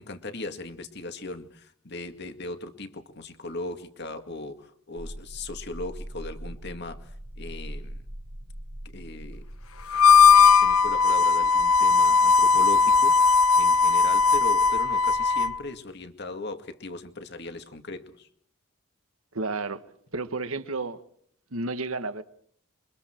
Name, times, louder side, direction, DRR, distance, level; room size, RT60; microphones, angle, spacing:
voice 1, 0.0-8.0 8.8-9.5 10.4-18.3, left 2 dB, 50° left, 2.1 m, -38 dB
sound 1, 5.0-11.0, right 1 dB, 20° right, 1.2 m, -41 dB
Harmonica, 9.9-15.6, left 5 dB, 85° left, 1.0 m, -18 dB
voice 2, 19.3-19.8 20.1-21.0 21.5-22.2, right 3 dB, 80° right, 1.6 m, -31 dB
28.5 x 24.0 x 4.6 m
head